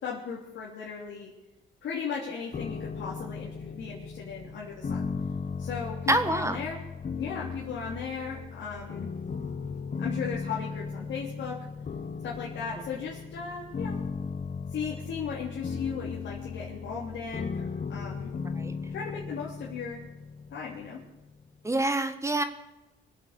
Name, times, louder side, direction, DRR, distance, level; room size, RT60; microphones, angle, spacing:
voice 1, 0.0-1.3 1.8-5.1 5.6-6.8 7.2-9.1 10.0-11.6 12.2-14.0 14.7-18.3 18.9-20.0 20.5-21.0, left 6 dB, 70° left, -4 dB, 3.1 m, -36 dB
sound 1, 2.5-21.5, left 5 dB, 40° left, 1.3 m, -37 dB
voice 2, 6.1-6.6 18.6-18.7 21.6-22.4, right 2 dB, 15° right, 9 dB, 1.5 m, -26 dB
23.0 x 8.6 x 6.7 m, 1.0 s
cardioid pair, 90°, 20 cm